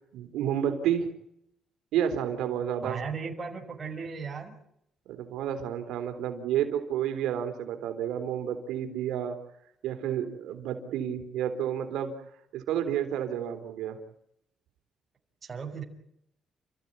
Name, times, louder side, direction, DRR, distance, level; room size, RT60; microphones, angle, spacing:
voice 1, 0.1-1.1 1.9-3.0 5.1-9.4 9.8-12.1 12.5-14.0, right 9 dB, 90° right, 6 dB, 3.7 m, -30 dB
voice 2, 2.8-4.6 15.4-15.8, right 5 dB, 35° right, 1 dB, 6.0 m, -36 dB
30.0 x 15.0 x 10.0 m, 0.76 s
cardioid pair, 90°, 0 cm